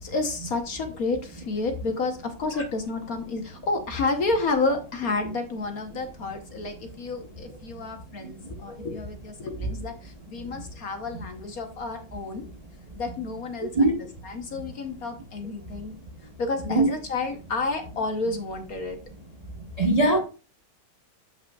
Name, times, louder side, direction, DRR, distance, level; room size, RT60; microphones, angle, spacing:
voice 1, 0.0-12.5 13.0-15.9 16.4-19.0, left 3 dB, 55° left, 1.1 m, -30 dB
voice 2, 19.8-20.2, right 2 dB, 50° right, 0.4 m, -20 dB
12.0 x 5.6 x 2.3 m
omnidirectional pair, 2.4 m